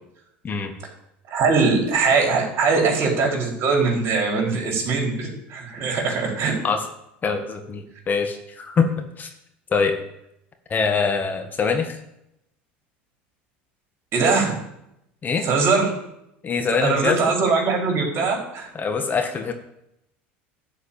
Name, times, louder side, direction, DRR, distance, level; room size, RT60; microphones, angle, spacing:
voice 1, 1.3-6.5 14.1-14.6 15.4-15.9 16.8-18.7, right 4 dB, 45° right, 0 dB, 4.3 m, -21 dB
voice 2, 7.2-9.3 9.7-10.0 10.7-12.0 15.2-15.5 16.4-17.2 18.7-19.5, left 5 dB, 30° left, 5 dB, 1.6 m, -23 dB
11.5 x 5.1 x 8.6 m, 0.82 s
hypercardioid pair, 85°, 6 cm